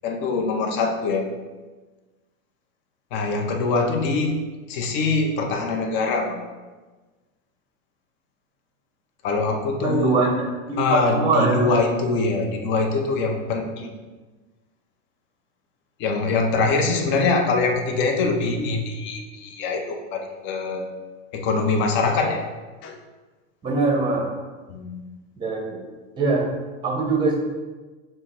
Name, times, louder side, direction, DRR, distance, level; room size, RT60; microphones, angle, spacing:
voice 1, 0.0-1.3 3.1-6.4 9.2-10.2 10.8-13.9 16.0-20.9 21.3-22.4 22.8-23.0 24.7-25.0, left 3 dB, 30° left, 3 dB, 0.5 m, -23 dB
voice 2, 9.8-10.3 10.7-11.7 23.6-24.3 25.4-25.8 26.2-26.5 26.8-27.4, right 3 dB, 10° right, -1 dB, 0.7 m, -22 dB
5.4 x 2.1 x 4.3 m, 1.3 s
supercardioid pair, 145°, 37 cm